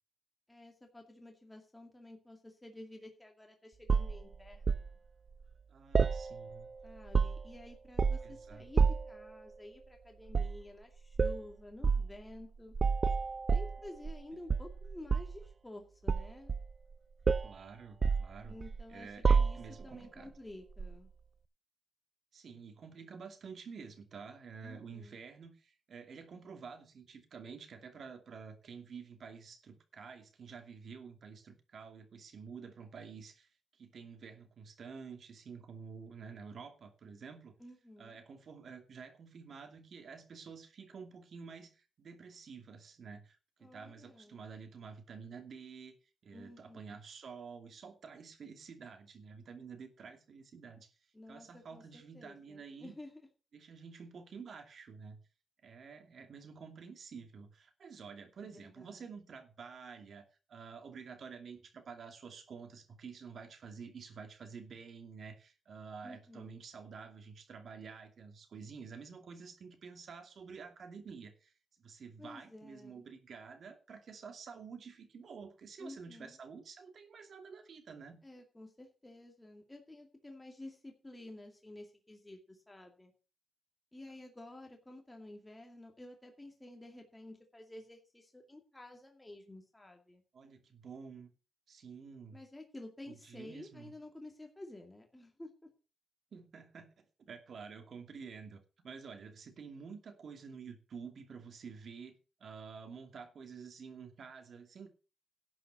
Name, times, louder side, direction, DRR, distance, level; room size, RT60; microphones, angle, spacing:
voice 1, 0.5-4.9 6.8-12.7 13.5-16.5 18.5-19.1 19.4-19.6 19.8-21.1 24.6-25.2 37.6-38.2 43.6-44.4 46.3-47.0 51.1-53.1 58.4-59.1 66.0-66.5 72.2-73.0 75.8-76.4 78.2-83.1 83.9-90.2 92.3-95.5, left 1 dB, 15° left, 2.2 m, -51 dB
sound 1, 3.9-4.9 5.9-6.7 7.0-7.6 8.0-8.3 8.8-9.2 10.3-10.6 11.2-11.4 11.8-12.1 12.8-14.2 14.5-15.4 16.1-16.9 17.3-17.6 18.0-18.8 19.2-19.9 20.8-21.0, right 5 dB, 40° right, 0.5 m, -29 dB
voice 2, 5.7-6.7 8.2-8.6 17.4-18.6 18.9-20.4 22.3-37.5 38.0-45.9 46.2-50.9 51.3-52.9 53.5-55.2 55.6-71.5 71.8-78.2 90.3-91.3 91.7-92.4 93.1-93.9 96.3-96.9 97.3-104.9, right 5 dB, 65° right, 2.6 m, -50 dB
11.5 x 5.7 x 7.7 m
wide cardioid pair, 110°, 0 cm